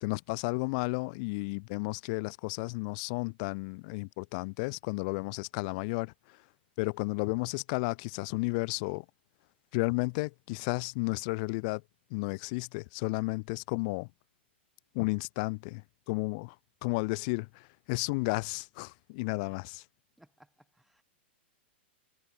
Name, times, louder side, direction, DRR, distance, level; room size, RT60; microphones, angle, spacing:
voice 1, 0.0-6.4 6.8-9.1 9.7-11.8 12.1-14.1 14.9-16.6 16.8-19.8, left 30 dB, 40° left, 0.4 m, -33 dB
voice 2, 20.2-21.0, right 1 dB, ahead, 1.8 m, -62 dB
hypercardioid pair, 145°, 6 cm